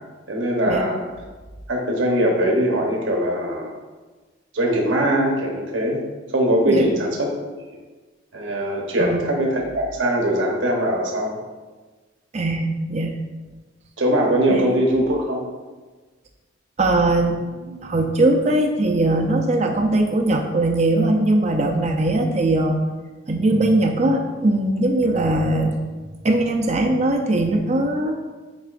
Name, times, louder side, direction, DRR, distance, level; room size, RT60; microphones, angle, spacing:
voice 1, 0.3-1.0 1.7-3.8 4.5-6.0 6.3-7.3 8.3-11.4 14.0-15.4, right 1 dB, 75° right, -1 dB, 1.0 m, -21 dB
voice 2, 12.3-13.1 14.5-14.6 16.8-22.8 23.3-25.8 26.2-28.2, right 2 dB, 35° right, 3 dB, 0.5 m, -20 dB
9.2 x 4.7 x 2.5 m, 1.3 s
head